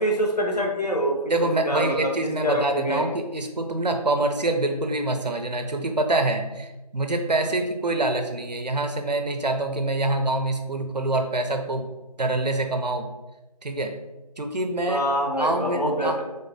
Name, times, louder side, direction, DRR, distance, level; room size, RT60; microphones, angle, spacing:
voice 1, 0.0-1.2 1.6-2.1 2.4-3.1 14.9-16.2, equal, 75° left, -1 dB, 1.1 m, -25 dB
voice 2, 1.3-11.9 12.2-13.1 13.6-13.9 14.4-15.0 15.4-16.2, right 2 dB, 85° right, 5 dB, 0.7 m, -25 dB
3.7 x 2.6 x 3.9 m, 1.0 s
figure-of-eight pair, 180°, 21 cm